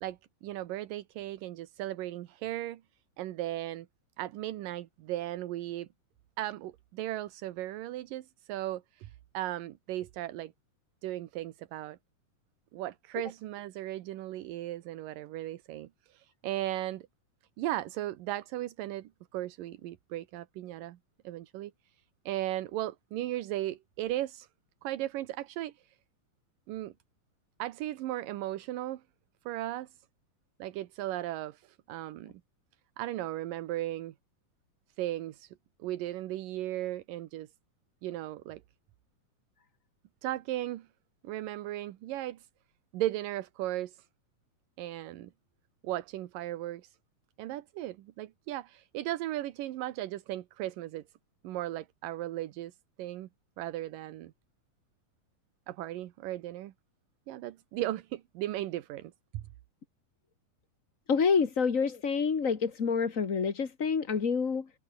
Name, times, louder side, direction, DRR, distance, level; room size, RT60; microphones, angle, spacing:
voice 1, 0.0-2.8 3.2-3.9 4.2-5.9 6.4-10.5 11.0-12.0 12.7-17.1 17.6-21.0 21.2-22.0 22.3-24.5 24.8-26.0 26.7-26.9 27.6-29.0 29.5-29.9 30.6-32.3 33.0-34.1 35.0-37.5 38.0-38.6 40.2-40.9 41.2-42.5 42.9-44.1 44.8-45.3 45.8-47.0 47.4-51.0 51.4-53.3 53.6-54.3 55.7-56.7 57.3-59.5, right 14 dB, 85° right, 2.8 m, -36 dB
voice 2, 61.1-64.7, left 5 dB, 35° left, 1.3 m, -28 dB
omnidirectional pair, 3.8 m